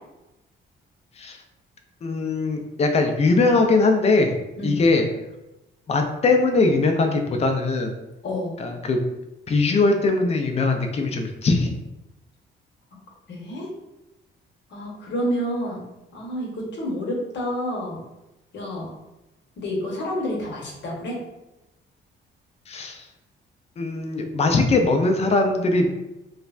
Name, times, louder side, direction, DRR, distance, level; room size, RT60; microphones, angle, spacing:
voice 1, 2.0-4.3 4.6-5.0 5.9-8.0 8.6-9.0 9.5-11.7 22.7-23.0 23.8-25.9, left 3 dB, 30° left, 4 dB, 0.4 m, -21 dB
voice 2, 8.2-8.5 13.3-13.7 14.7-15.9 16.1-18.0 18.5-18.9 19.6-21.2, equal, 65° left, -2 dB, 1.0 m, -29 dB
3.2 x 2.1 x 2.4 m, 0.96 s
cardioid pair, 90°, 20 cm